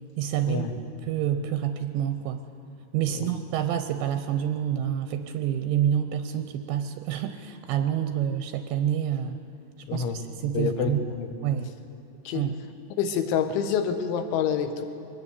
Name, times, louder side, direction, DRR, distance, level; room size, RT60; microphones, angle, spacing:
voice 1, 0.2-0.7 1.0-2.4 2.9-9.4 9.9-11.0 11.4-11.7 12.3-12.6, right 10 dB, 80° right, 9 dB, 2.7 m, -28 dB
voice 2, 9.9-10.2 10.5-11.3 12.3-12.4 13.0-14.9, left 7 dB, 75° left, 8 dB, 3.6 m, -27 dB
23.0 x 19.0 x 8.2 m, 2.7 s
omnidirectional pair, 5.7 m